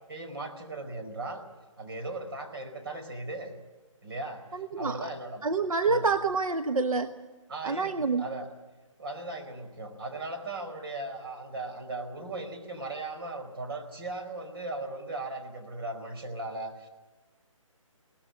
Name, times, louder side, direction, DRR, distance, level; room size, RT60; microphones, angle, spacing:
voice 1, 0.1-1.4 1.8-3.5 4.0-4.4 4.8-5.5 5.9-6.1 7.5-8.5 9.0-16.9, right 2 dB, 45° right, 4 dB, 4.5 m, -37 dB
voice 2, 4.5-5.0 5.4-7.2 7.6-8.2, right 4 dB, 85° right, 9 dB, 1.1 m, -27 dB
22.0 x 18.5 x 9.5 m, 1.2 s
hypercardioid pair, 170°, 17 cm